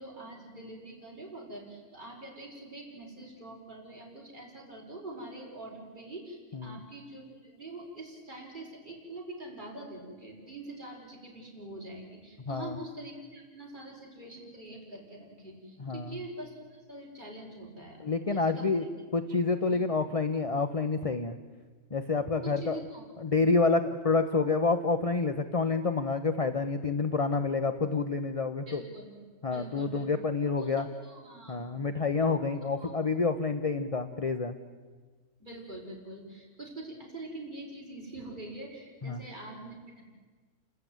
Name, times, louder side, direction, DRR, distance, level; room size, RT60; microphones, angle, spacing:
voice 1, 0.0-16.5 16.9-19.1 19.7-19.8 22.4-23.1 28.7-29.2 29.5-30.1 30.6-31.7 32.5-32.9 35.4-40.0, right 2 dB, 30° right, -2 dB, 5.3 m, -44 dB
voice 2, 12.5-12.8 15.8-16.2 18.0-18.9 19.1-21.4 21.9-22.8 23.2-28.8 29.4-30.9 31.5-34.6 39.0-39.2, left 4 dB, 30° left, 9 dB, 0.7 m, -28 dB
29.5 x 13.5 x 9.3 m, 1.4 s
omnidirectional pair, 1.5 m